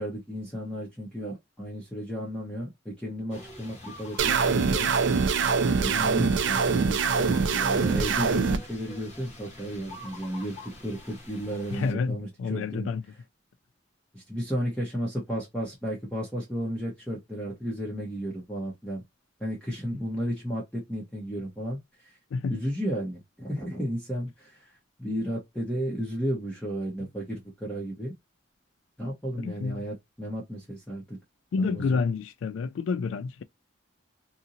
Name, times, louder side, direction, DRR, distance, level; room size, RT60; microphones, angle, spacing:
voice 1, 0.0-4.9 5.7-12.9 14.1-19.0 19.4-22.1 22.5-24.7 25.0-28.1 29.0-31.2 31.6-32.0, equal, 5° left, 1.0 m, -33 dB
sound 1, 3.3-11.9, left 1 dB, 35° left, 0.9 m, -46 dB
sound 2, 4.2-8.6, right 5 dB, 65° right, 0.4 m, -24 dB
voice 2, 11.7-13.0 22.3-22.6 29.4-29.8 31.5-33.4, left 4 dB, 80° left, 0.3 m, -29 dB
2.8 x 2.6 x 2.5 m
head